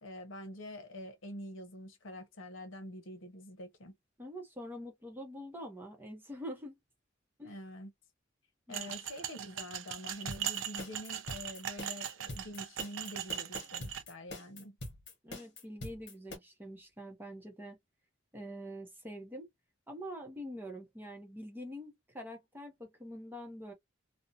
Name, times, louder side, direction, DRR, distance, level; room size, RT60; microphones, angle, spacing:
voice 1, 0.0-3.9 7.4-7.9 8.7-14.8, left 1 dB, 85° left, 0.8 m, -46 dB
voice 2, 4.2-6.7 7.4-7.6 8.7-8.9 15.2-17.8 18.3-19.5 19.9-23.7, equal, 10° right, 0.6 m, -45 dB
sound 1, 8.7-14.0, right 10 dB, 80° right, 0.4 m, -40 dB
sound 2, 10.3-16.4, left 1 dB, 60° left, 1.2 m, -44 dB
2.5 x 2.1 x 2.6 m
head